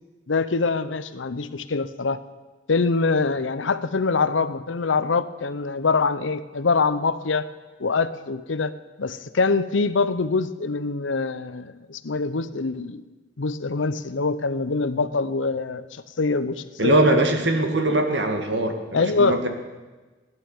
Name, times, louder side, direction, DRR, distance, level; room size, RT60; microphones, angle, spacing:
voice 1, 0.3-2.2 2.7-7.5 7.8-8.7 9.0-13.0 13.4-17.2 18.9-19.5, left 4 dB, 85° left, 14 dB, 0.8 m, -24 dB
voice 2, 16.8-19.5, right 1 dB, 65° right, 5 dB, 1.8 m, -21 dB
16.0 x 11.0 x 7.2 m, 1.2 s
head